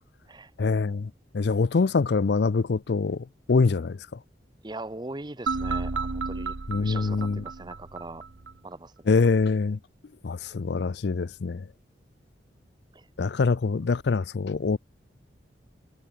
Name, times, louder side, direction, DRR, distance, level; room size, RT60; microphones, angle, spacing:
voice 1, 0.6-4.0 6.7-7.4 9.1-9.8 10.2-11.6 13.2-14.8, left 4 dB, 60° left, 0.5 m, -24 dB
voice 2, 4.6-6.5 6.8-8.2 8.6-9.1 12.9-13.1, right 2 dB, 25° right, 0.9 m, -40 dB
sound 1, 5.5-8.5, right 4 dB, 80° right, 1.0 m, -32 dB
head